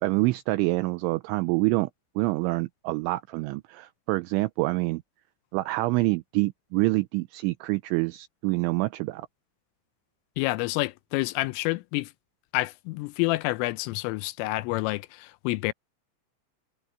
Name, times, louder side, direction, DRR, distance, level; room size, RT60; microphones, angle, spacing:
voice 1, 0.0-1.9 2.2-5.0 5.5-9.3, right 22 dB, 90° right, 2.7 m, -26 dB
voice 2, 10.4-12.1 12.5-15.7, left 20 dB, 85° left, 3.1 m, -28 dB
omnidirectional pair, 6.0 m